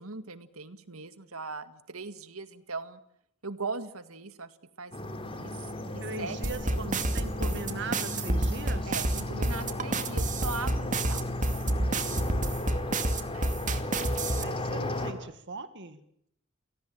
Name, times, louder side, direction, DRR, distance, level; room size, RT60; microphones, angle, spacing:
voice 1, 0.0-3.0 3.4-6.8 8.8-11.3 13.3-13.6, right 3 dB, 85° right, 11 dB, 2.0 m, -40 dB
sound 1, 4.9-15.1, left 1 dB, 25° left, 3.2 m, -35 dB
voice 2, 6.0-8.9 14.4-16.0, right 3 dB, 60° right, 11 dB, 1.9 m, -40 dB
sound 2, 6.4-14.4, right 2 dB, 40° right, 2.4 m, -28 dB
29.0 x 18.0 x 9.0 m, 0.72 s
head